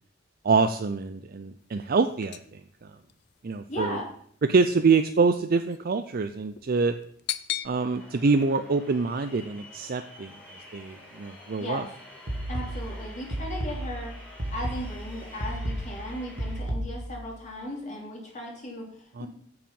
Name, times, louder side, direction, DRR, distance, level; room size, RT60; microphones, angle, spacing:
voice 1, 0.4-2.9 3.4-4.0 4.5-6.9 7.6-10.3 10.7-11.9 19.2-19.3, right 4 dB, 50° right, 9 dB, 0.5 m, -25 dB
sound 1, 1.6-7.7, left 12 dB, 60° left, 0.5 m, -39 dB
voice 2, 3.7-4.1 11.6-11.9 12.5-14.1 14.5-19.3, left 1 dB, 40° left, -1 dB, 2.9 m, -36 dB
sound 2, 7.6-16.6, left 1 dB, 5° left, 3.7 m, -49 dB
sound 3, 12.3-17.2, right 1 dB, 85° right, 2.1 m, -33 dB
14.5 x 4.8 x 5.4 m, 0.64 s
head